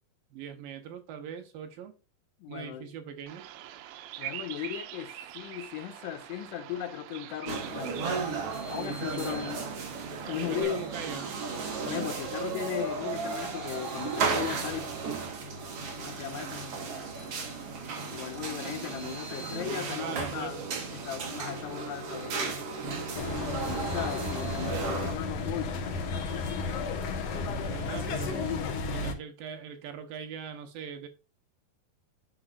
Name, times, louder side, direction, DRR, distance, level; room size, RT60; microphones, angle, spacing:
voice 1, 0.3-1.9 2.5-3.5 9.1-9.4 10.4-11.4 18.3-18.8 20.0-20.7 27.3-31.1, right 8 dB, 70° right, 2.4 m, -41 dB
voice 2, 2.4-2.9 4.2-8.0 8.7-9.6 10.3-10.9 11.8-14.9 16.0-16.7 18.1-20.6 20.9-22.6 23.8-25.9, left 11 dB, 90° left, 3.1 m, -37 dB
Bird vocalization bird call bird song, 3.3-10.6, right 13 dB, 85° right, 2.7 m, -44 dB
sound 1, 7.4-25.2, right 4 dB, 50° right, 2.1 m, -34 dB
sound 2, 23.1-29.1, left 4 dB, 65° left, 1.6 m, -33 dB
9.8 x 6.2 x 2.4 m
omnidirectional pair, 4.7 m